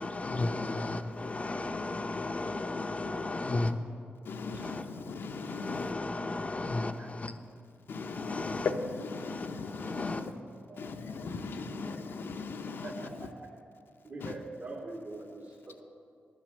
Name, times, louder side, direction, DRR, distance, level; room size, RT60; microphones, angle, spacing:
voice 1, 0.0-3.7 4.4-4.9 5.3-7.4 7.9-8.7 9.2-10.2 11.8-12.0 12.7-12.9 14.2-14.3, left 2 dB, 35° left, 7 dB, 0.6 m, -35 dB
voice 2, 4.2-5.9 7.9-10.3 10.8-13.3 14.2-14.3, left 4 dB, 75° left, 6 dB, 0.7 m, -38 dB
voice 3, 12.8-13.5 14.0-15.8, right 2 dB, 65° right, -4 dB, 2.7 m, -43 dB
10.0 x 7.5 x 6.4 m, 2.4 s
cardioid pair, 60°, 4 cm